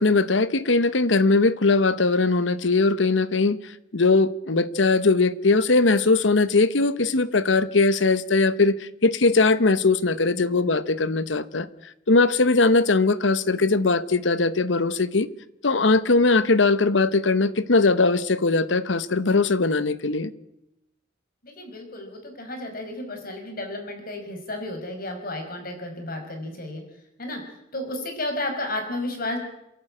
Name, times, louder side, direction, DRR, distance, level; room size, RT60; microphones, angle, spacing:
voice 1, 0.0-3.6 3.9-11.7 12.1-15.3 15.6-20.3, left 3 dB, 85° left, 1.0 m, -20 dB
voice 2, 21.4-26.8 27.2-27.4 27.7-29.4, left 1 dB, 50° left, 5.1 m, -32 dB
27.5 x 11.5 x 8.8 m
head